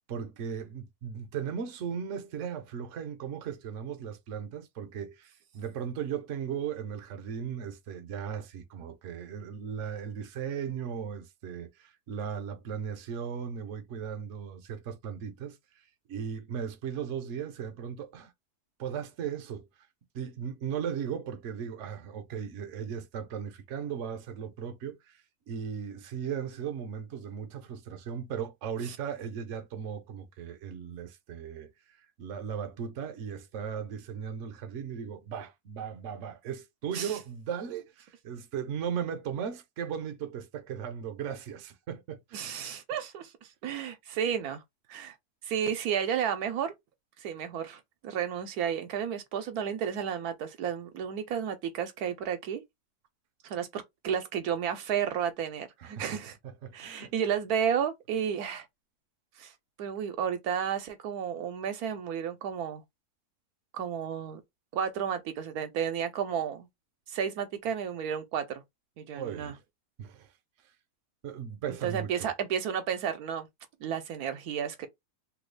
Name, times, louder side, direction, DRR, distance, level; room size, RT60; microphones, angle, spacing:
voice 1, 0.1-15.6 16.1-18.3 18.8-19.7 20.1-25.2 25.5-42.5 55.8-56.0 56.6-57.1 69.1-69.6 70.0-70.3 71.2-72.3, right 7 dB, 60° right, 0.9 m, -37 dB
voice 2, 42.3-43.3 43.6-44.6 44.9-45.1 45.4-46.7 47.2-52.6 53.4-56.4 56.7-58.7 59.4-59.5 59.8-62.8 63.7-64.4 64.7-66.7 67.1-68.6 69.0-69.5 71.7-73.5 73.8-74.9, right 8 dB, 75° right, 1.1 m, -32 dB
3.1 x 2.3 x 3.2 m
omnidirectional pair, 1.6 m